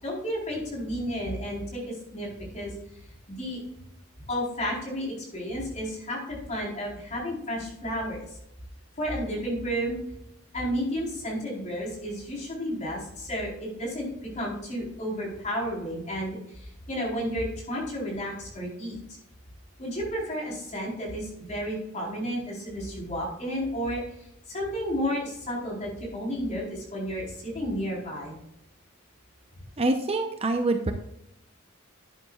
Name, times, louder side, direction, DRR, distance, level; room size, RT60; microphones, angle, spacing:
voice 1, 0.0-3.0 3.3-3.6 4.3-8.4 9.0-10.0 10.5-19.0 19.8-28.4, equal, 35° left, -3 dB, 4.2 m, -32 dB
voice 2, 29.8-30.9, right 2 dB, 30° right, 5 dB, 0.8 m, -25 dB
11.0 x 10.0 x 2.4 m, 0.77 s
head